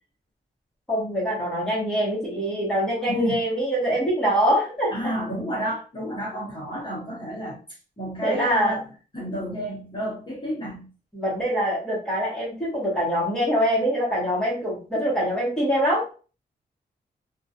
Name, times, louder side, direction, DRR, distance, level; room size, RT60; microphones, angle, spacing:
voice 1, 0.9-5.1 8.2-8.8 11.1-16.0, equal, 5° left, -7 dB, 1.1 m, -24 dB
voice 2, 3.1-3.4 4.9-7.6 8.0-8.8 9.1-10.9, equal, 25° left, -6 dB, 1.0 m, -31 dB
2.4 x 2.2 x 2.7 m, 0.36 s
wide cardioid pair, 155°, 17 cm